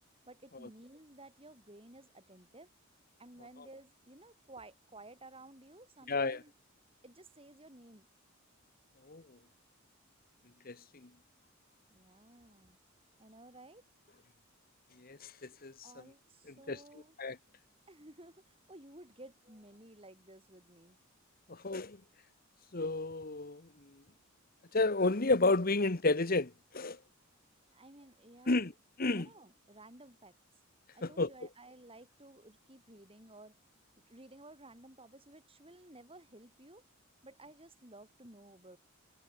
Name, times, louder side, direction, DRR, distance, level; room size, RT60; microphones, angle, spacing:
voice 1, 0.3-2.7 3.2-6.5 7.0-8.1 11.9-12.8 13.2-13.9 15.8-17.2 17.5-21.0 27.7-28.7 29.1-30.4 30.9-33.6 34.1-36.8 37.2-38.8, right 2 dB, 25° right, 6.9 m, -55 dB
voice 2, 6.1-6.4 9.1-9.2 10.6-10.8 15.0-15.3 15.6-15.7 16.7-16.8 17.2-17.4 21.5-22.0 22.7-23.6 24.7-27.0 28.5-28.7 29.0-29.3 31.0-31.3, left 3 dB, 45° left, 1.2 m, -30 dB
head